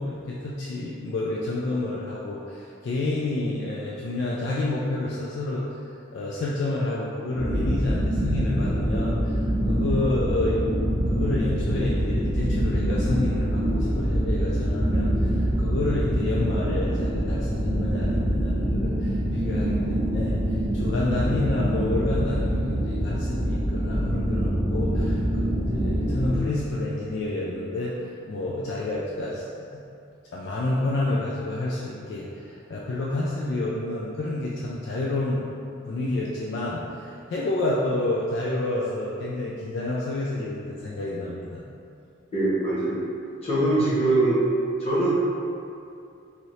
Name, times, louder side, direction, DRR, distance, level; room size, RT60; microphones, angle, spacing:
voice 1, 0.0-5.7 6.1-10.6 11.1-29.5 29.7-29.8 30.3-35.5 35.9-41.6, left 2 dB, 60° left, -5 dB, 0.3 m, -29 dB
sound 1, 7.3-26.4, equal, 15° right, 0.5 m, -25 dB
voice 2, 42.3-43.0 43.4-44.4 44.8-45.1, right 2 dB, 30° left, -10 dB, 1.0 m, -22 dB
2.8 x 2.7 x 3.1 m, 2.5 s
head